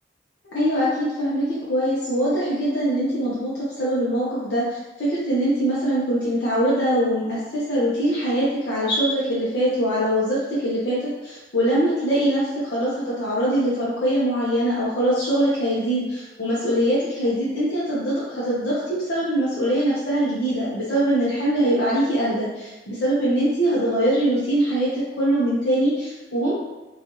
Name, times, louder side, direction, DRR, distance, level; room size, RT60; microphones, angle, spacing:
voice 1, 0.5-18.8 19.1-26.5, right 1 dB, 70° left, -9 dB, 0.7 m, -22 dB
3.0 x 2.3 x 2.6 m, 1.1 s
head